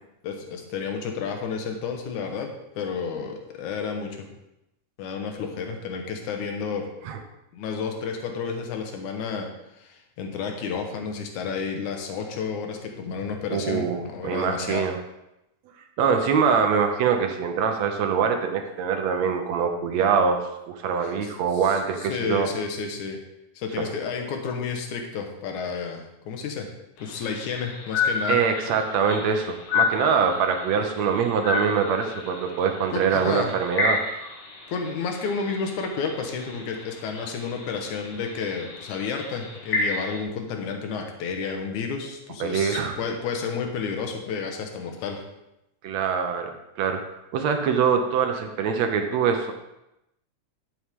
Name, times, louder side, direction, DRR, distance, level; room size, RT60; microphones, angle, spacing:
voice 1, 0.2-2.5 2.8-4.3 5.0-6.9 7.5-9.5 9.8-14.9 21.0-23.2 23.6-26.7 27.0-28.4 32.9-33.5 34.7-45.2, left 5 dB, 80° left, 3 dB, 2.6 m, -31 dB
voice 2, 13.5-15.0 16.0-22.5 23.8-23.9 28.3-34.0 42.4-43.0 45.8-49.5, right 6 dB, 70° right, 5 dB, 2.0 m, -24 dB
sound 1, 27.0-40.2, left 4 dB, 60° left, 2.7 m, -31 dB
11.5 x 8.0 x 3.7 m, 0.88 s
omnidirectional pair, 3.4 m